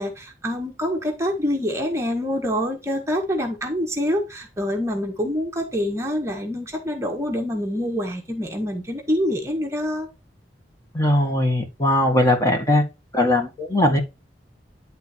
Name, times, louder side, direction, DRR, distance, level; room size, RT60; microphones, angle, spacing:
voice 1, 0.0-10.1, equal, 15° right, 1.5 m, -26 dB
voice 2, 10.9-12.8 13.1-14.0, left 1 dB, 20° left, 1.7 m, -19 dB
10.5 x 3.9 x 4.4 m
head